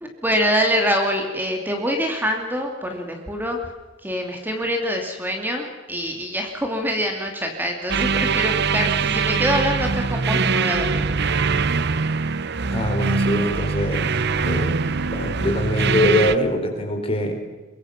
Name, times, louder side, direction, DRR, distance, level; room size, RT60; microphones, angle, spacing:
voice 1, 0.0-3.6 4.0-11.4, equal, 10° right, 3 dB, 2.8 m, -25 dB
sound 1, 7.9-16.4, right 4 dB, 60° right, 0.8 m, -22 dB
voice 2, 12.7-14.1 14.5-14.8 15.1-17.4, left 1 dB, 30° left, 4 dB, 4.3 m, -23 dB
24.0 x 23.0 x 6.0 m, 1.3 s
head